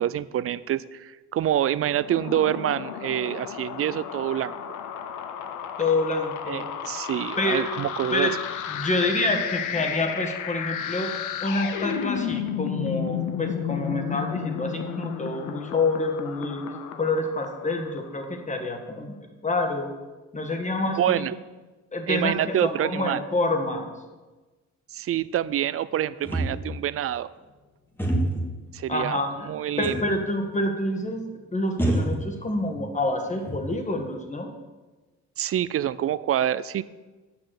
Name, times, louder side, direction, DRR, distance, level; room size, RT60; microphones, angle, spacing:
voice 1, 0.0-4.5 6.5-8.3 21.0-21.4 22.1-23.2 24.9-27.3 28.7-29.2 29.5-30.0 35.4-36.8, right 11 dB, 50° right, 17 dB, 0.4 m, -26 dB
sound 1, 1.9-18.2, left 9 dB, 85° left, 0.7 m, -33 dB
voice 2, 5.8-6.6 7.4-7.7 8.1-8.3 8.7-11.1 11.4-16.6 17.0-19.9 20.3-21.3 21.9-23.9 28.9-29.5 29.8-34.5, left 2 dB, 25° left, 4 dB, 1.6 m, -27 dB
sound 2, 26.2-26.9 28.0-28.6 29.8-30.2 30.5-30.6 31.8-32.8 33.2-34.0, right 1 dB, 5° left, 1.6 m, -27 dB
8.7 x 6.0 x 6.6 m, 1.2 s
cardioid pair, 90°, 30 cm